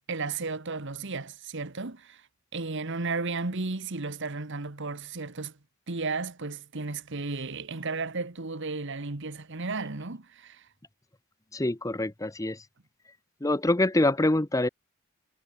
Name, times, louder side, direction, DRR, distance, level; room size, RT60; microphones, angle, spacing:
voice 1, 0.1-2.2 2.5-5.5 5.9-10.7, right 3 dB, 60° right, 1.5 m, -34 dB
voice 2, 11.5-12.6 13.4-14.7, left 1 dB, 15° left, 0.8 m, -25 dB
head